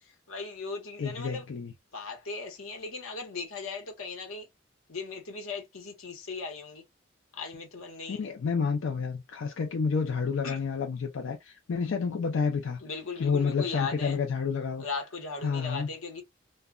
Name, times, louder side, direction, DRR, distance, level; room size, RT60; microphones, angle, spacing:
voice 1, 0.3-1.4 1.9-4.5 4.9-6.8 7.3-8.2 10.4-10.6 12.8-14.2 14.8-16.2, left 4 dB, 85° left, 0.9 m, -37 dB
voice 2, 1.0-1.7 8.1-12.8 13.2-14.9 15.4-15.9, left 5 dB, 65° left, 0.4 m, -29 dB
2.1 x 2.1 x 3.6 m
head